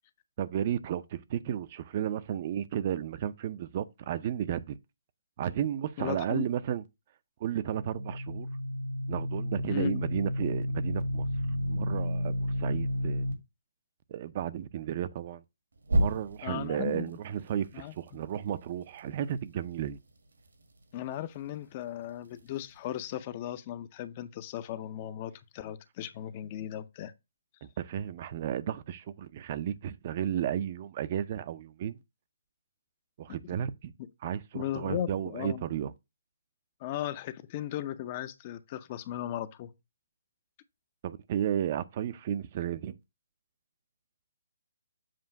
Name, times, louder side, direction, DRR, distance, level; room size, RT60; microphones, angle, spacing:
voice 1, 0.4-4.8 5.4-6.8 7.4-8.5 9.1-11.3 11.7-13.3 14.1-15.4 15.9-20.0 27.6-32.0 33.2-33.9 34.2-35.9 41.0-43.0, right 10 dB, 35° right, 0.4 m, -33 dB
voice 2, 6.0-6.4 9.7-10.0 16.4-17.1 17.7-18.2 20.9-27.1 33.3-33.5 34.5-35.6 36.8-39.7, left 12 dB, 30° left, 0.5 m, -37 dB
sound 1, 7.5-13.3 15.8-16.6, equal, 85° right, 1.7 m, -31 dB
7.5 x 2.5 x 5.6 m
hypercardioid pair, 160°, 0 cm